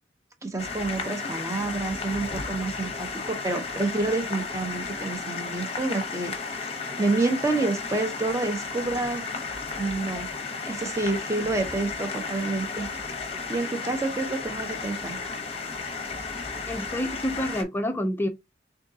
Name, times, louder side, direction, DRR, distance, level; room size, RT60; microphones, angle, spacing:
voice 1, 0.4-6.3 7.0-9.2 9.8-10.3 10.7-12.9 13.5-15.2, right 2 dB, 15° right, 0.8 m, -28 dB
sound 1, 0.6-17.6, left 4 dB, 30° left, 0.8 m, -34 dB
voice 2, 16.7-18.3, equal, 10° left, 0.5 m, -28 dB
3.6 x 3.6 x 2.7 m
head